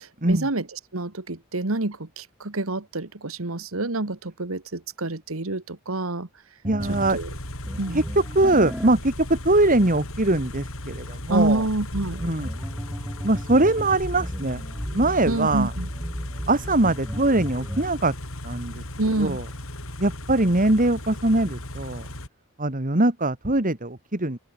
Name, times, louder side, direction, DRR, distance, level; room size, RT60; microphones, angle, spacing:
voice 1, 0.0-6.3 6.9-7.4 7.8-8.0 11.3-12.2 15.3-15.9 19.0-19.4, right 2 dB, 75° right, 1.8 m, -27 dB
sound 1, 6.6-17.9, equal, 5° right, 3.4 m, -36 dB
voice 2, 6.6-7.2 7.9-8.0 8.4-11.6 12.2-12.5 13.2-14.6 14.9-15.7 16.5-18.1 18.4-18.8 19.2-19.4 20.0-22.1 22.6-24.4, right 2 dB, 40° right, 2.3 m, -22 dB
Car / Idling, 6.8-22.3, left 1 dB, 75° left, 6.7 m, -37 dB
open air
head